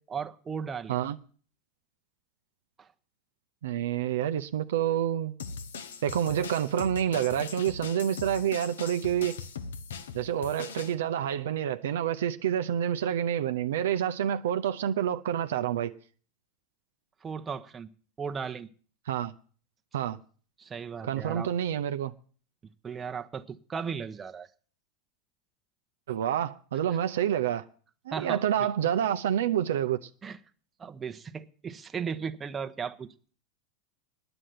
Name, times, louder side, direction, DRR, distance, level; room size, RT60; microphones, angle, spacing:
voice 1, 0.1-0.9 2.8-2.9 17.2-17.9 18.2-18.7 20.6-21.5 22.8-24.5 28.1-28.4 30.2-30.4 30.8-33.1, right 6 dB, 25° right, 0.9 m, -36 dB
voice 2, 3.6-5.4 6.0-9.4 10.1-15.9 19.1-19.3 19.9-20.2 21.0-22.1 26.1-27.6 28.1-30.1, right 10 dB, 75° right, 0.6 m, -28 dB
sound 1, 5.4-10.9, left 5 dB, 80° left, 0.8 m, -40 dB
9.9 x 7.9 x 9.4 m
hypercardioid pair, 95°, 0 cm